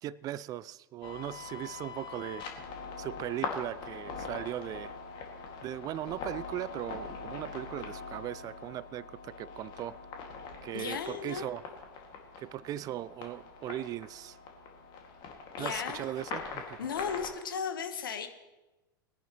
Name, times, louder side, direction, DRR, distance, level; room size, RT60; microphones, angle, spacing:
voice 1, 0.0-2.5 3.0-5.0 5.6-10.0 10.6-11.6 12.4-14.4 15.6-16.8, right 12 dB, 30° right, 20 dB, 0.3 m, -38 dB
sound 1, 1.0-17.3, left 5 dB, 40° left, 2.2 m, -42 dB
voice 2, 10.7-11.5 15.6-16.1 16.8-18.3, left 7 dB, 70° left, 8 dB, 1.2 m, -35 dB
21.0 x 10.5 x 3.1 m, 1.1 s
figure-of-eight pair, 85°, 12 cm